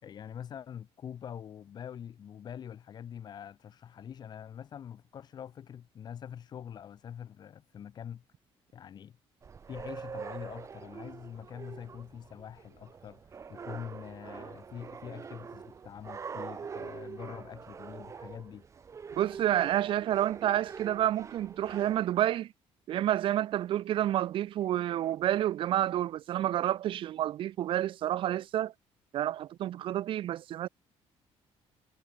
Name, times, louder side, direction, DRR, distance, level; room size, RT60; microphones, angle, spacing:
voice 1, 0.0-8.2 8.7-9.2 9.7-18.7, left 9 dB, 40° left, 2.2 m, -44 dB
sound 1, 9.4-22.1, right 6 dB, 25° right, 5.4 m, -44 dB
voice 2, 19.2-22.5 22.9-28.7 29.1-30.7, right 12 dB, 50° right, 0.7 m, -29 dB
cardioid pair, 170°, 11 cm